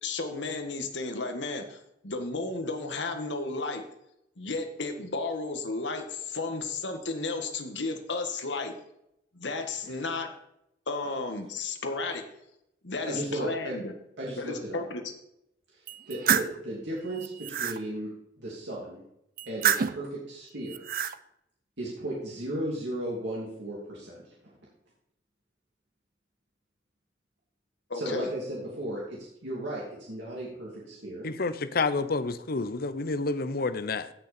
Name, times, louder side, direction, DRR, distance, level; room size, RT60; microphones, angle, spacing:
voice 1, 0.0-3.8 4.4-8.7 9.3-10.3 10.9-12.2 12.8-13.9 14.4-15.0 27.9-28.3, left 3 dB, 85° left, 1.7 m, -33 dB
voice 2, 13.0-13.7 14.2-14.8 15.7-18.1 18.4-19.0 19.5-20.8 21.8-24.3 27.9-31.3, right 1 dB, 75° right, 2.9 m, -35 dB
sound 1, 15.9-16.6 17.1-17.8 19.4-20.1 20.7-21.2, right 8 dB, 55° right, 0.5 m, -28 dB
voice 3, 31.2-34.1, left 3 dB, 55° left, 0.7 m, -29 dB
16.0 x 6.6 x 4.3 m
head